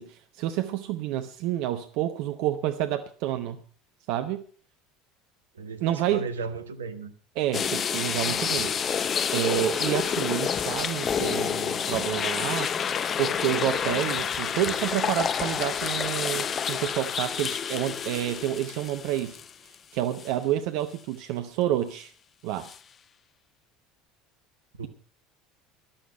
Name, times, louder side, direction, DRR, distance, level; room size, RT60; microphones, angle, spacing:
voice 1, 0.0-3.6 4.1-4.4 5.8-6.3 7.4-8.7 9.3-12.7 13.2-19.4 19.9-22.1 22.4-22.7, right 12 dB, 60° right, 9 dB, 0.8 m, -29 dB
voice 2, 5.5-7.1 24.8-24.9, right 4 dB, 80° right, 10 dB, 1.1 m, -35 dB
sound 1, 7.5-19.7 20.2-20.3 22.6-22.8, left 7 dB, 35° left, 0.7 m, -29 dB
14.5 x 11.5 x 5.4 m, 0.43 s
figure-of-eight pair, 65°, 0 cm